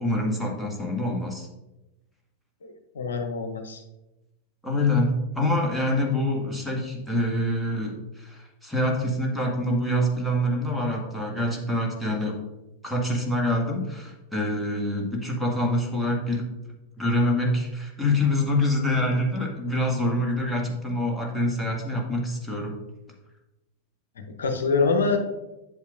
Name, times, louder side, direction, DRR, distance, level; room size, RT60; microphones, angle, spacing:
voice 1, 0.0-1.5 4.6-12.3 12.8-16.5 17.0-22.7, left 1 dB, ahead, -2 dB, 1.6 m, -26 dB
voice 2, 2.6-3.8 24.3-25.2, left 4 dB, 70° left, 5 dB, 0.9 m, -25 dB
8.2 x 7.4 x 2.5 m, 1.0 s
figure-of-eight pair, 90°, 0 cm